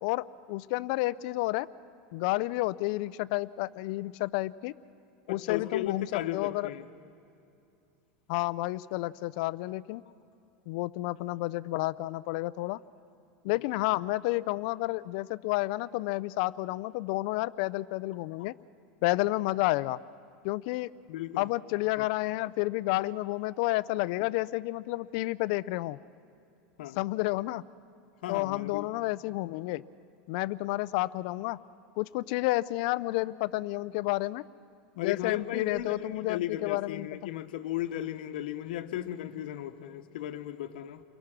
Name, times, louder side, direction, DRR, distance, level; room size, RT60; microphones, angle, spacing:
voice 1, 0.0-1.7 2.1-4.7 5.3-6.7 8.3-10.0 10.7-12.8 13.4-18.5 19.0-20.0 20.4-20.9 21.4-26.0 27.0-27.6 28.3-29.8 30.3-31.6 32.0-34.4 35.0-37.1, left 19 dB, 60° left, 0.5 m, -30 dB
voice 2, 5.3-6.9 13.6-13.7 21.1-21.5 22.0-22.1 26.8-27.0 28.2-28.9 35.0-41.0, left 12 dB, 85° left, 1.1 m, -36 dB
29.5 x 23.0 x 6.1 m
supercardioid pair, 150°, 5 cm